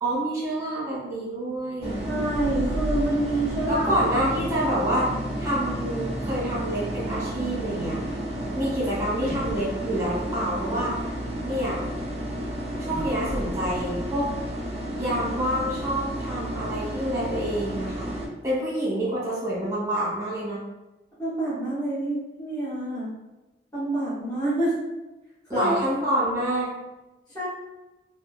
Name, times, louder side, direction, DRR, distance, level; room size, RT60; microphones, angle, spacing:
voice 1, 0.0-2.0 3.7-8.0 8.5-11.1 11.4-11.8 12.8-14.3 15.0-18.1 18.4-20.6 25.5-26.7, right 1 dB, 20° right, -8 dB, 1.1 m, -27 dB
sound 1, 1.8-18.3, right 1 dB, 35° right, 0.5 m, -31 dB
voice 2, 2.1-3.9 4.6-4.7 21.2-23.1 23.7-24.7 25.5-25.7 27.3-27.5, right 2 dB, 20° left, -12 dB, 1.1 m, -27 dB
2.6 x 2.5 x 2.4 m, 1.0 s
head